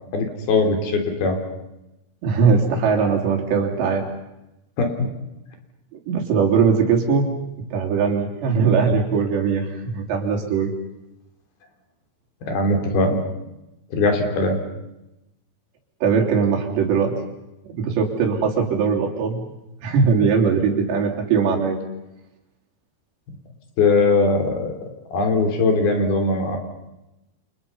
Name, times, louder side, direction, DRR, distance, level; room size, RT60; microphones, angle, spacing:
voice 1, 0.1-1.4 4.8-5.1 12.4-13.2 13.9-14.6 23.8-24.7 25.1-26.6, left 3 dB, 65° left, 4 dB, 5.1 m, -20 dB
voice 2, 2.2-4.1 6.1-7.3 7.7-10.8 16.0-17.1 17.7-19.5 19.8-21.8, right 5 dB, 90° right, 1 dB, 5.6 m, -20 dB
29.5 x 28.0 x 5.6 m, 0.93 s
omnidirectional pair, 4.8 m